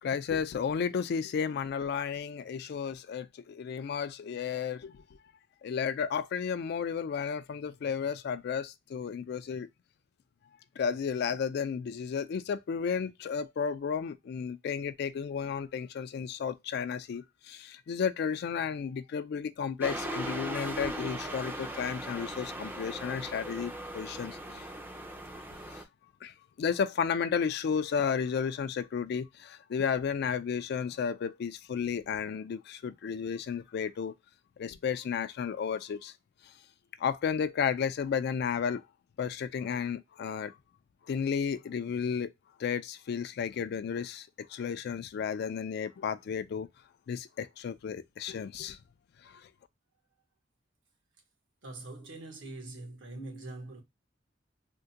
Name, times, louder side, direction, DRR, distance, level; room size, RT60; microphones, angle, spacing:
voice 1, 0.0-5.0 5.6-9.7 10.8-24.6 25.6-25.8 26.2-34.1 34.6-36.1 37.0-38.8 39.2-40.6 41.1-42.3 42.6-46.7 47.1-48.8 49.2-49.5, left 6 dB, 60° left, 0.3 m, -33 dB
sound 1, 19.8-25.8, right 1 dB, 10° right, 0.4 m, -39 dB
voice 2, 51.6-53.8, right 2 dB, 75° right, 1.0 m, -43 dB
3.5 x 2.1 x 2.6 m
head